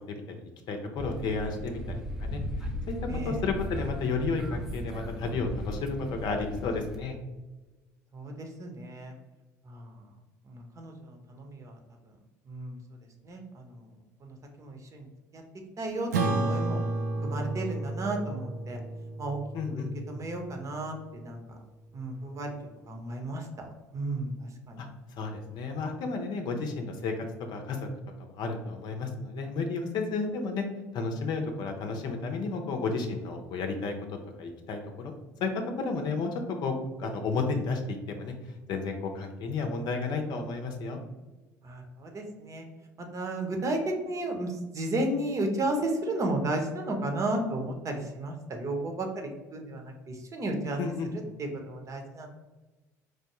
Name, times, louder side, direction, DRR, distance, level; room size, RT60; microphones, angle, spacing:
voice 1, 0.7-1.8 2.2-2.4 2.9-3.0 3.2-7.1 19.5-19.9 24.8-24.9 25.2-27.9 28.2-30.6 30.9-33.9 34.4-35.1 35.4-38.3 38.7-41.0 50.8-51.1, left 4 dB, 55° left, 4 dB, 0.6 m, -32 dB
sound 1, 1.0-7.0, left 1 dB, 5° right, 0.6 m, -37 dB
voice 2, 8.1-9.1 9.7-9.9 10.5-11.7 12.5-12.8 13.2-13.8 14.2-15.1 15.3-15.4 15.8-16.8 17.2-18.8 19.2-19.4 19.7-21.4 21.9-22.5 22.9-24.8 41.6-42.6 43.0-50.8 51.4-52.3, right 2 dB, 40° right, 3 dB, 0.9 m, -33 dB
Acoustic guitar / Strum, 16.1-20.8, right 2 dB, 85° right, 0.4 m, -32 dB
4.7 x 2.2 x 3.0 m, 1.2 s
hypercardioid pair, 65°, 9 cm